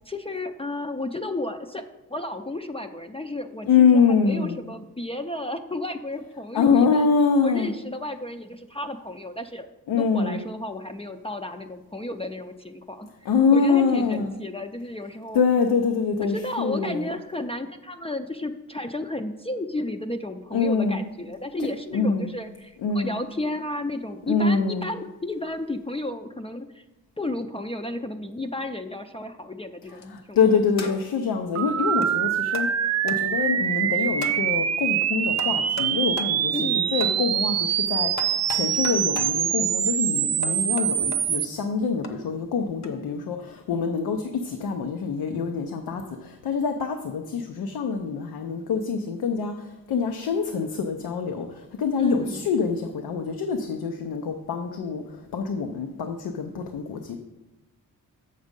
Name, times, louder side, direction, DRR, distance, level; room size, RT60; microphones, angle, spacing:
voice 1, 0.1-1.8 2.1-7.1 7.4-9.7 10.0-15.4 16.2-26.8 27.2-30.6 30.8-30.9 36.5-36.9 52.0-52.5, left 2 dB, 15° left, 6 dB, 0.4 m, -33 dB
voice 2, 3.7-4.6 6.5-7.7 9.9-10.5 13.3-14.3 15.3-17.1 20.5-21.0 21.9-22.3 22.8-23.1 24.3-24.9 30.1-32.7 33.0-49.5 49.9-51.5 51.8-55.0 55.3-57.2, left 5 dB, 90° left, 5 dB, 0.7 m, -24 dB
sound 1, 29.9-30.2 30.8-31.2 32.0-32.1 32.5-32.7 33.1-33.2 34.2-34.4 35.4-35.9 36.2-36.3 37.0-37.2 38.2-39.3 40.4-41.2 42.0-42.1 42.8-43.0, left 4 dB, 50° left, 0.9 m, -36 dB
sound 2, 31.5-41.4, right 9 dB, 50° right, 0.4 m, -24 dB
7.2 x 6.6 x 5.2 m, 1.0 s
cardioid pair, 100°, 36 cm